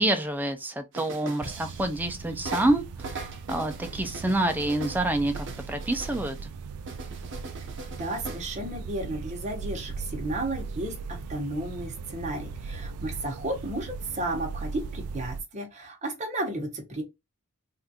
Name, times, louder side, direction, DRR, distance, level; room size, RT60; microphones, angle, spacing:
voice 1, 0.0-6.4, right 1 dB, 10° right, 0.4 m, -27 dB
sound 1, 0.9-2.1 2.4-6.4 6.9-8.4, right 3 dB, 55° right, 0.8 m, -40 dB
sound 2, 1.4-15.4, right 4 dB, 85° right, 0.4 m, -38 dB
voice 2, 8.0-17.0, right 1 dB, 30° right, 1.1 m, -33 dB
3.5 x 2.5 x 2.8 m
head